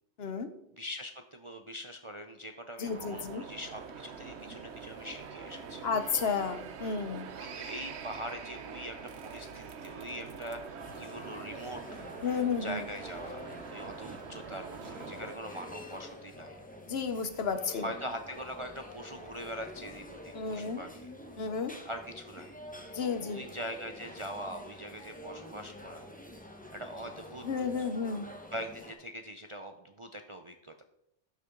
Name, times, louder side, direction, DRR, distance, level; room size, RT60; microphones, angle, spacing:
voice 1, 0.2-0.5 2.8-3.4 5.8-7.3 12.2-12.8 16.9-17.8 20.3-20.8 21.4-21.7 22.9-23.4 27.4-28.3, left 5 dB, 60° left, 10 dB, 1.0 m, -32 dB
voice 2, 0.7-5.8 7.4-9.0 9.2-12.1 12.6-16.5 17.7-21.1 21.8-22.6 23.0-26.1 26.7-27.5 27.8-27.9 28.5-30.8, equal, 40° right, 5 dB, 0.4 m, -42 dB
sound 1, 2.8-15.3, right 6 dB, 70° right, 1.0 m, -45 dB
sound 2, 10.8-28.9, left 1 dB, 5° left, 1.2 m, -47 dB
12.0 x 6.7 x 3.8 m, 0.81 s
omnidirectional pair, 1.2 m